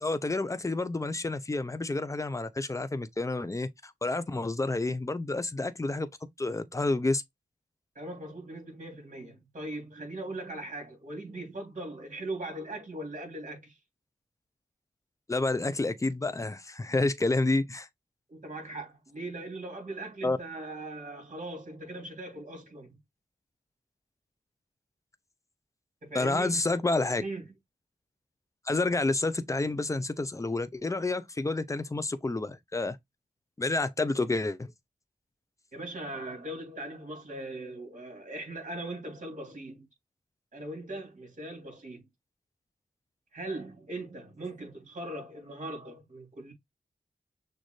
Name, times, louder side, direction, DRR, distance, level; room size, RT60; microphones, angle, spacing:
voice 1, 0.0-6.1 6.4-7.2 15.3-17.9 20.2-20.4 26.1-27.2 28.7-33.0 33.6-34.7, left 2 dB, 20° left, 0.6 m, -29 dB
voice 2, 7.9-13.8 18.3-23.0 26.0-26.5 27.2-27.4 35.7-39.9 40.5-42.0 43.3-46.5, right 2 dB, 55° right, 3.0 m, -40 dB
6.5 x 2.5 x 3.2 m
cardioid pair, 65°, 15 cm